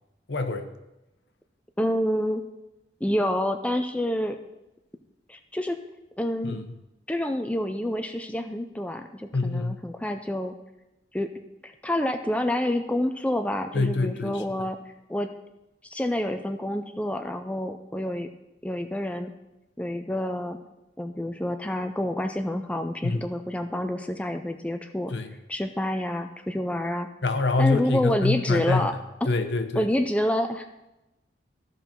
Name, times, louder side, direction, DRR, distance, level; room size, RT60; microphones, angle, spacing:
voice 1, 0.3-0.7 6.4-6.7 9.3-9.8 13.7-14.4 23.0-23.3 25.1-25.3 27.2-28.9 29.3-29.9, left 3 dB, 80° left, 8 dB, 0.9 m, -25 dB
voice 2, 1.8-2.4 3.0-4.4 5.3-5.8 6.2-6.6 7.1-10.5 11.1-11.3 11.6-14.8 15.1-15.3 15.9-18.3 18.6-19.3 19.8-20.6 21.0-25.1 25.5-27.1 27.6-28.9 29.8-30.8, left 1 dB, 5° left, 6 dB, 0.4 m, -28 dB
14.0 x 5.5 x 4.4 m, 0.96 s
head